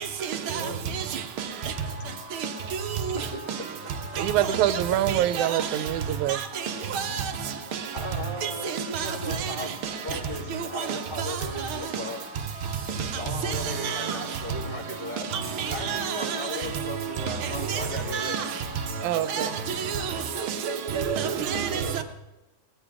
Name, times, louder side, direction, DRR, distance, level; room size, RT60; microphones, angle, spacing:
voice 1, 0.4-0.8 3.1-3.4 4.9-5.0 7.9-9.8 10.0-12.2 13.2-18.4 19.3-19.5 21.7-22.0, left 1 dB, 15° left, 3.3 m, -36 dB
sound 1, 1.6-20.5, left 5 dB, 60° left, 2.5 m, -45 dB
voice 2, 4.2-6.4 19.0-19.6, right 12 dB, 85° right, 2.1 m, -25 dB
voice 3, 6.9-7.2 8.4-8.5 13.8-14.0 15.9-16.1 17.7-17.8 18.1-18.4 19.3-19.5 20.9-21.8, right 7 dB, 55° right, 1.6 m, -28 dB
19.5 x 13.5 x 3.6 m
omnidirectional pair, 3.3 m